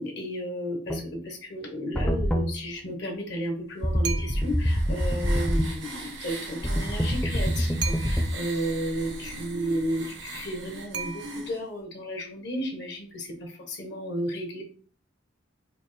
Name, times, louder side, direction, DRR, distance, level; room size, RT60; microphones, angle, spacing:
voice 1, 0.0-14.6, equal, 60° left, 2 dB, 1.0 m, -33 dB
sound 1, 0.9-1.1 1.9-2.5 3.8-5.7 6.6-8.3, equal, 5° left, 0.4 m, -25 dB
sound 2, 4.0-4.7 7.8-8.5 10.9-11.7, right 7 dB, 65° right, 0.5 m, -36 dB
sound 3, 4.1-11.6, right 2 dB, 90° right, 1.1 m, -40 dB
4.9 x 2.0 x 3.1 m, 0.42 s
head